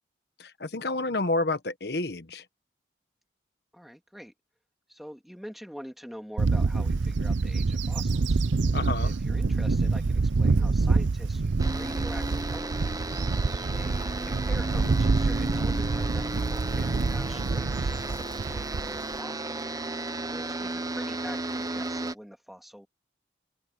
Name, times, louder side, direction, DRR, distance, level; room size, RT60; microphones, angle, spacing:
voice 1, 0.4-2.4 8.7-9.1, left 2 dB, 60° left, 1.2 m, -29 dB
voice 2, 3.7-4.3 4.9-8.4 9.0-13.1 13.7-19.6 20.2-22.9, equal, ahead, 2.4 m, -45 dB
Bird / Wind, 6.4-19.2, right 3 dB, 80° right, 0.6 m, -26 dB
sound 1, 11.6-22.1, right 2 dB, 20° right, 0.8 m, -34 dB
open air
head